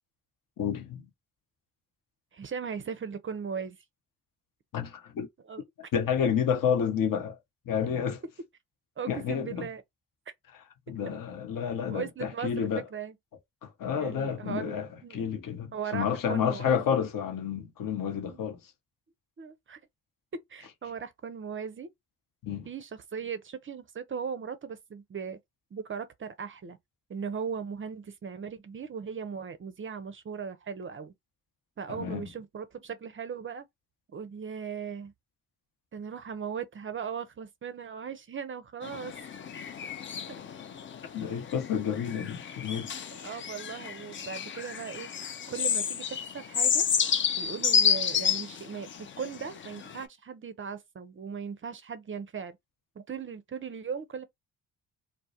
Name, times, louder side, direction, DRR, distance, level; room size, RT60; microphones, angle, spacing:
voice 1, 0.6-1.1 4.7-5.3 5.9-7.4 7.7-8.2 9.1-9.7 10.9-12.8 13.6-18.7 22.4-22.7 31.9-32.3 41.1-42.9, left 7 dB, 50° left, 0.8 m, -30 dB
voice 2, 2.3-3.8 5.5-5.6 9.0-9.8 11.9-13.1 14.0-15.3 15.7-17.0 18.2-18.4 19.4-19.8 20.3-21.9 22.7-25.4 25.7-26.8 27.1-31.1 31.8-33.7 34.1-35.1 35.9-39.1 40.3-40.4 43.2-45.1 45.5-46.9 47.4-52.6 53.0-54.3, right 6 dB, 30° right, 0.5 m, -38 dB
sound 1, 38.8-50.0, left 7 dB, 30° left, 0.4 m, -30 dB
2.2 x 2.1 x 2.7 m
hypercardioid pair, 45°, 45 cm